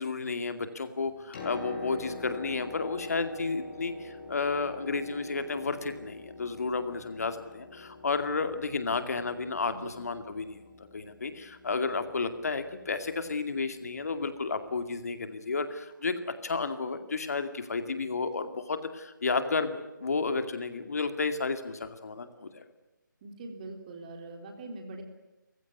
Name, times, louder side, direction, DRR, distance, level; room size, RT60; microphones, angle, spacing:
voice 1, 0.0-16.2 16.4-22.6, left 4 dB, 50° left, 9 dB, 2.3 m, -32 dB
Piano, 1.1-14.8 15.9-16.0, left 3 dB, 30° left, 6.5 m, -46 dB
voice 2, 23.2-25.0, right 2 dB, 25° right, 5 dB, 3.5 m, -42 dB
29.5 x 16.0 x 9.7 m, 1.0 s
figure-of-eight pair, 160°, 11 cm